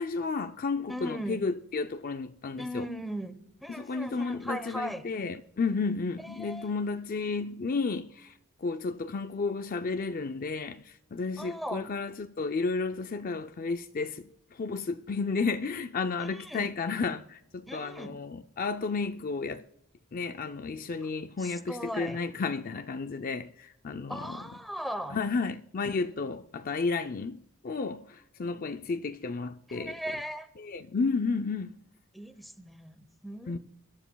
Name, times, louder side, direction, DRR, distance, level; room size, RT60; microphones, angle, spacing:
voice 1, 0.0-2.9 3.7-19.6 20.1-24.4 25.1-30.0 30.6-31.7 33.5-33.6, left 4 dB, 40° left, 0.4 m, -32 dB
voice 2, 0.9-1.5 2.6-5.0 6.2-6.7 11.4-11.9 16.2-16.8 17.7-18.2 21.4-22.2 24.1-25.3 29.7-30.5 32.1-33.6, equal, ahead, 0.9 m, -38 dB
24.0 x 12.5 x 2.3 m
head